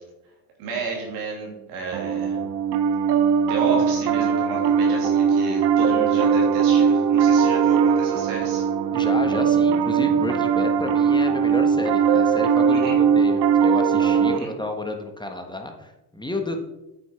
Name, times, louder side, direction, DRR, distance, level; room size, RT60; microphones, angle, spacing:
voice 1, 0.6-2.4 3.4-8.6 12.7-13.0 14.3-14.5, right 3 dB, 90° right, -1 dB, 3.0 m, -31 dB
Piano, 1.9-14.4, right 7 dB, 60° right, 0.8 m, -20 dB
voice 2, 8.9-16.6, left 1 dB, 10° left, 4 dB, 1.5 m, -31 dB
8.7 x 6.4 x 4.5 m, 0.96 s
supercardioid pair, 70°, 47 cm